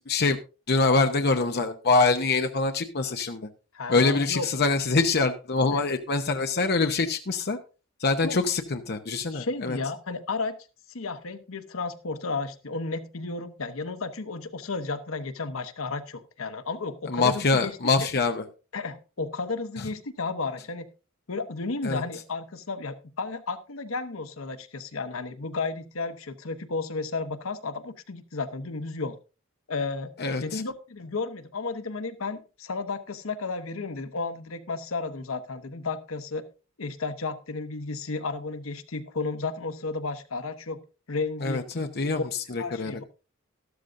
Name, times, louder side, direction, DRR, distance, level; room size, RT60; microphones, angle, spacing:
voice 1, 0.1-0.4 0.7-3.5 3.9-7.6 8.0-9.8 17.1-18.4 21.8-22.0 30.2-30.6 41.4-42.2 42.5-43.0, left 3 dB, 50° left, 6 dB, 0.8 m, -24 dB
voice 2, 3.7-4.5 5.7-5.8 8.2-8.4 9.3-10.6 10.9-18.1 18.7-20.9 21.3-29.2 29.7-30.1 30.4-36.4 36.8-40.8 41.1-42.3 42.6-43.0, left 3 dB, 75° left, 10 dB, 1.0 m, -33 dB
13.0 x 13.0 x 2.6 m, 0.32 s
head